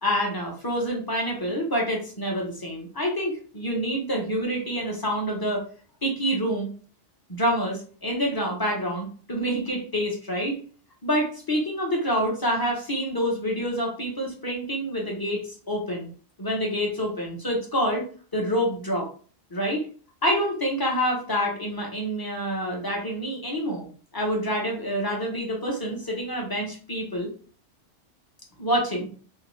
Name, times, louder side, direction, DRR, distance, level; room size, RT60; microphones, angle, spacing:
voice 1, 0.0-5.6 6.0-6.7 7.3-10.6 11.0-16.1 16.4-18.1 18.3-19.1 19.5-19.8 20.2-23.9 24.1-27.3 28.6-29.1, equal, 25° left, -1 dB, 0.5 m, -27 dB
2.6 x 2.1 x 3.0 m, 0.41 s
omnidirectional pair, 1.2 m